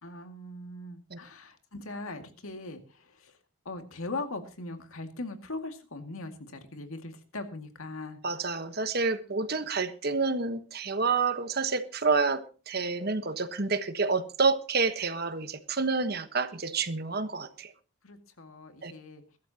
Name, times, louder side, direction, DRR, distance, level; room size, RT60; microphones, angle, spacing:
voice 1, 0.0-3.4 3.7-8.2 18.0-19.2, left 2 dB, 75° left, 6 dB, 2.2 m, -40 dB
voice 2, 8.2-17.7 18.8-18.9, right 4 dB, 45° right, 10 dB, 1.2 m, -29 dB
22.5 x 12.5 x 2.9 m, 0.35 s
head